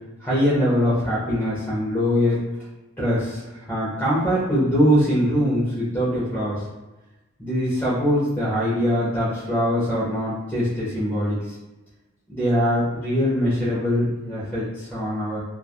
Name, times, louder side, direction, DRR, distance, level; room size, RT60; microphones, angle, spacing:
voice 1, 0.2-2.4 3.0-6.6 7.4-11.5 12.3-15.4, equal, 10° left, -10 dB, 0.7 m, -22 dB
3.1 x 2.3 x 2.2 m, 1.1 s
head